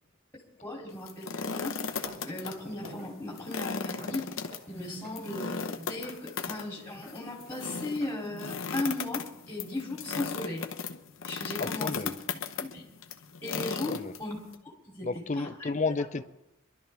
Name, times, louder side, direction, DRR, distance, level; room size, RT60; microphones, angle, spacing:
voice 1, 0.6-1.8 2.2-4.3 4.7-10.7 11.3-12.0 12.3-12.9 13.4-14.4 14.8-15.7, left 2 dB, 10° left, 3.1 m, -37 dB
sound 1, 0.9-2.5 2.8-2.9 3.4-14.6, left 5 dB, 80° left, 0.9 m, -36 dB
Walk footsteps, 2.0-8.1, right 1 dB, 45° right, 7.2 m, -50 dB
voice 2, 11.6-12.1 13.9-14.1 15.0-16.2, left 3 dB, 35° left, 0.5 m, -32 dB
24.0 x 12.0 x 3.5 m
head